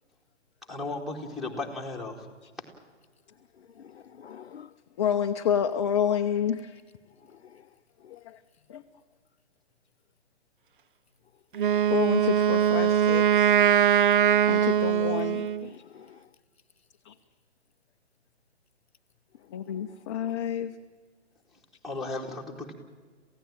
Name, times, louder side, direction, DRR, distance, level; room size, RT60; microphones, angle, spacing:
voice 1, 0.7-2.3 21.8-22.7, left 2 dB, ahead, 2.4 m, -35 dB
voice 2, 3.8-4.7 7.4-7.6 8.0-8.2 11.6-11.7 15.7-16.2 19.8-20.4, left 8 dB, 60° left, 0.6 m, -50 dB
voice 3, 5.0-6.8 8.1-8.4 8.7-8.8 11.9-13.6 14.5-15.8 17.1-17.2 19.5-20.7, left 9 dB, 25° left, 0.7 m, -29 dB
Wind instrument woodwind instrument, 11.5-15.7, right 9 dB, 45° right, 0.6 m, -22 dB
27.5 x 16.0 x 8.9 m
figure-of-eight pair, 130°, 35 cm